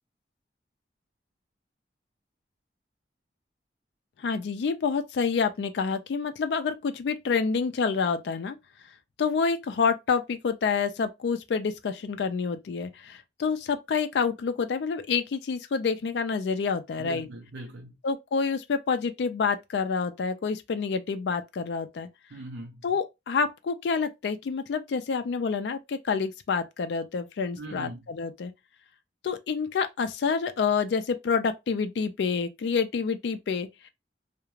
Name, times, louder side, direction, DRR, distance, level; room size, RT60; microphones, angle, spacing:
voice 1, 4.2-8.6 9.2-17.3 18.0-22.1 22.8-28.5 29.2-33.9, left 5 dB, 75° left, 0.4 m, -28 dB
voice 2, 17.0-18.0 22.3-22.8 27.6-28.1, right 2 dB, 80° right, 0.5 m, -40 dB
2.4 x 2.1 x 3.0 m
head